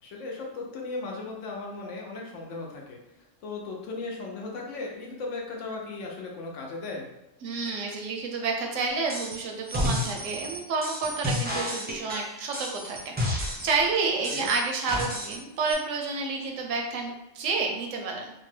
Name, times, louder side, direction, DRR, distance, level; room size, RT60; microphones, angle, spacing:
voice 1, 0.0-3.0 3.4-7.1 14.3-14.5, left 3 dB, 75° left, -1 dB, 1.0 m, -36 dB
voice 2, 7.4-18.3, right 4 dB, 80° right, 2 dB, 1.0 m, -30 dB
sound 1, 9.1-9.4 9.7-13.8 14.2-15.4 15.7-15.8, left 1 dB, 15° right, 0.4 m, -31 dB
2.8 x 2.1 x 3.2 m, 0.96 s
omnidirectional pair, 1.3 m